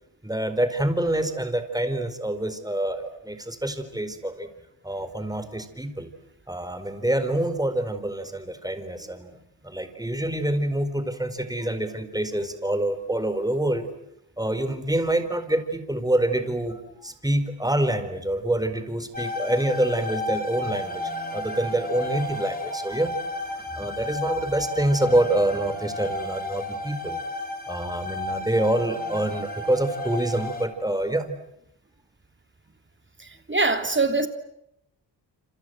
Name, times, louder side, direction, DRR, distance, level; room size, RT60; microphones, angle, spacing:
voice 1, 0.2-4.5 4.8-6.1 6.5-9.3 9.6-13.9 14.4-23.1 23.7-27.2 27.7-31.4, right 1 dB, 10° right, 4.5 m, -26 dB
sound 1, 19.1-30.7, left 1 dB, 20° left, 4.9 m, -32 dB
voice 2, 33.5-34.3, right 3 dB, 25° right, 3.2 m, -22 dB
28.0 x 27.0 x 7.9 m
cardioid pair, 60°, 43 cm